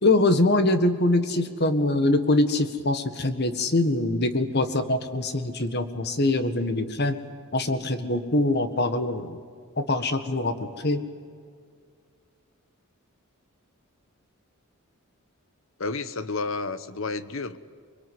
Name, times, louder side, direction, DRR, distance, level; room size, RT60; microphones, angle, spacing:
voice 1, 0.0-7.2 7.5-9.4 9.8-10.5 10.8-11.0, left 2 dB, 50° left, 9 dB, 1.7 m, -23 dB
voice 2, 15.8-17.6, left 3 dB, 65° left, 14 dB, 1.1 m, -31 dB
23.5 x 22.5 x 9.5 m, 2.1 s
head